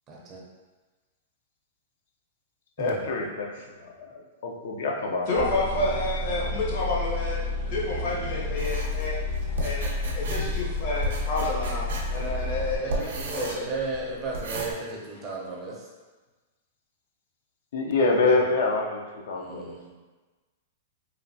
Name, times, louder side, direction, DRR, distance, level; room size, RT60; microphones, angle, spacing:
voice 1, 0.1-0.4 2.8-3.1 12.3-12.4 12.8-15.9 19.3-19.9, right 3 dB, 25° right, -3 dB, 0.5 m, -35 dB
voice 2, 2.8-5.5 17.7-19.7, left 3 dB, 70° left, 1 dB, 0.4 m, -26 dB
sound 1, 5.3-12.8, left 3 dB, 85° left, 1.0 m, -31 dB
voice 3, 5.3-7.4 7.7-9.2 9.6-13.7 18.1-18.4, left 2 dB, 50° left, -4 dB, 0.8 m, -30 dB
sound 2, 8.6-14.7, right 1 dB, 85° right, 0.5 m, -34 dB
3.1 x 2.2 x 2.6 m, 1.3 s
supercardioid pair, 150°, 0 cm